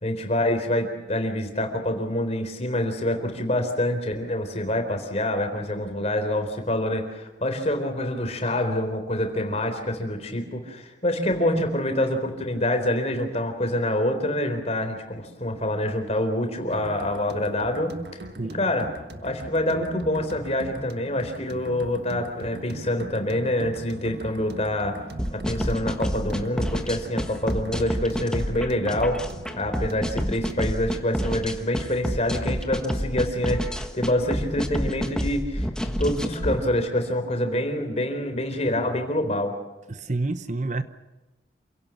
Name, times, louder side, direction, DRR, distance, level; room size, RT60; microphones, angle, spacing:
voice 1, 0.0-17.9 18.5-18.9 19.2-25.0 25.3-29.2 29.5-39.6, left 1 dB, 35° left, 6 dB, 4.0 m, -26 dB
sound 1, 16.7-30.7, right 1 dB, 60° right, 1.5 m, -41 dB
sound 2, 25.2-36.6, equal, 5° left, 1.4 m, -28 dB
voice 2, 39.9-40.8, right 2 dB, 40° right, 11 dB, 0.9 m, -28 dB
28.5 x 17.0 x 7.4 m, 1.1 s
head